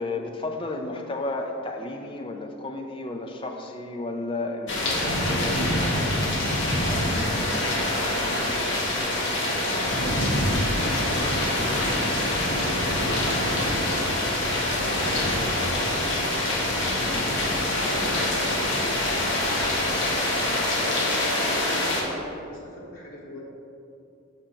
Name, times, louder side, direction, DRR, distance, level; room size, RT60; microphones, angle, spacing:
voice 1, 0.0-8.9, left 2 dB, 25° left, 3 dB, 0.4 m, -34 dB
sound 1, 4.7-22.0, left 1 dB, 60° left, 1.0 m, -25 dB
voice 2, 10.5-11.2 11.5-16.7 17.4-23.4, left 1 dB, 80° left, -6 dB, 1.2 m, -41 dB
5.8 x 5.6 x 3.8 m, 2.6 s
head